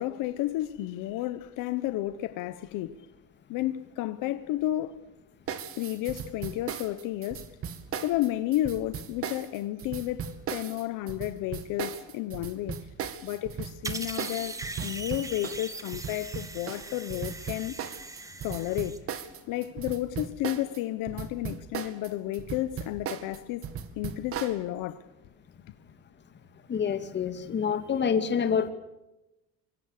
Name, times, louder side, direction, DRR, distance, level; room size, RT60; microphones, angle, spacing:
voice 1, 0.0-3.0 3.5-5.0 5.8-7.5 8.0-12.9 13.2-17.7 18.4-19.0 19.5-23.7 24.0-25.0, left 14 dB, 75° left, 1.1 m, -32 dB
sound 1, 5.5-20.8 21.1-24.6, right 8 dB, 45° right, 2.1 m, -37 dB
sound 2, 13.8-19.0, right 2 dB, 10° right, 1.9 m, -40 dB
voice 2, 26.7-28.7, left 7 dB, 35° left, 2.5 m, -27 dB
26.0 x 24.5 x 6.7 m
cardioid pair, 150°, 33 cm